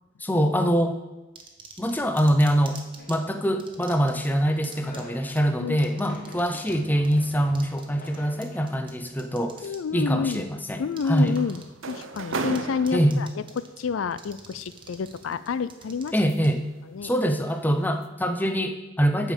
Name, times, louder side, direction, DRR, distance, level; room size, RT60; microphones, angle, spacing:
voice 1, 0.2-1.0 1.8-2.8 3.1-11.4 12.9-13.2 16.1-16.6 17.0-19.3, equal, 10° left, 7 dB, 0.6 m, -24 dB
sound 1, 1.4-3.2 3.6-4.3 4.6-5.0 5.3-5.4 5.8-6.8 7.0-9.8 10.3-10.4 10.9-11.6 11.9-12.6 12.9-13.8 14.1-16.5, right 5 dB, 25° right, 1.0 m, -46 dB
sound 2, 3.0-10.1, left 1 dB, 45° left, 1.2 m, -48 dB
voice 2, 5.5-6.2 9.6-10.5 10.8-13.3 13.6-16.1 16.9-17.1, left 5 dB, 85° left, 15 dB, 0.4 m, -29 dB
sound 3, 10.7-13.6 14.8-16.7 17.1-17.4 17.8-18.1, right 3 dB, 85° right, 0.7 m, -36 dB
8.7 x 5.2 x 7.5 m, 1.1 s
head